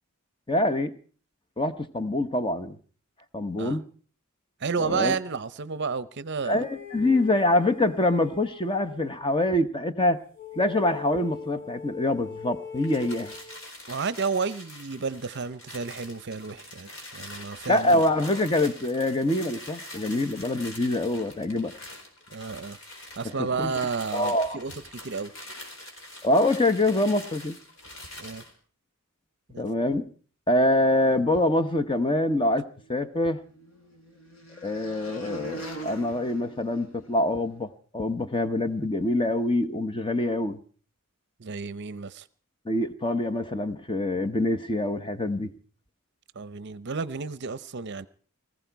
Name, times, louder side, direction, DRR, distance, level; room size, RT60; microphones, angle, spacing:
voice 1, 0.5-0.9 1.6-2.8 3.3-3.8 4.8-5.2 6.5-10.2 10.6-13.3 17.7-21.7 23.2-23.7 24.1-24.6 26.2-27.6 29.6-30.1 30.5-33.4 34.6-40.6 42.7-45.5, left 1 dB, 20° left, 1.0 m, -25 dB
voice 2, 4.6-6.7 13.9-18.0 22.3-22.8 23.2-25.3 28.2-28.4 29.5-29.6 41.4-42.3 46.4-48.1, right 5 dB, 50° right, 0.7 m, -31 dB
sound 1, 6.5-9.1 10.3-13.6, left 6 dB, 40° left, 4.1 m, -41 dB
sound 2, 12.8-28.5, left 1 dB, 60° left, 4.4 m, -44 dB
sound 3, 32.7-37.4, right 2 dB, 85° left, 3.9 m, -43 dB
20.0 x 15.0 x 4.6 m
head